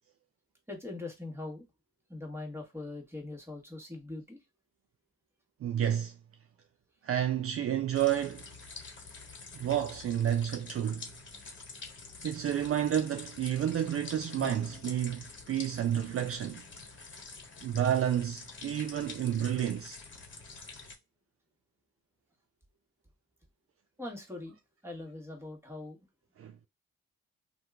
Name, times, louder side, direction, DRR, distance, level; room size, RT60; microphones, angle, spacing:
voice 1, 0.7-1.6 2.1-4.4 24.0-24.5 24.8-26.0, left 2 dB, 10° right, 1.3 m, -41 dB
voice 2, 5.6-6.1 7.0-8.4 9.6-11.1 12.2-16.6 17.6-20.0 26.4-26.5, right 10 dB, 50° right, 0.4 m, -30 dB
sound 1, 7.9-20.9, left 3 dB, 40° left, 1.1 m, -47 dB
2.7 x 2.2 x 3.5 m
cardioid pair, 65°, 29 cm